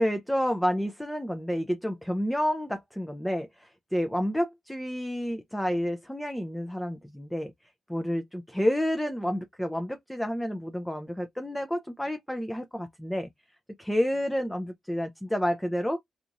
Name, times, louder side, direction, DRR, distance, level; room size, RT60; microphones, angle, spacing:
voice 1, 0.0-7.5 7.9-13.3 13.8-16.0, equal, 5° left, 0.5 m, -29 dB
2.9 x 2.4 x 2.5 m
supercardioid pair, 60°, 0 cm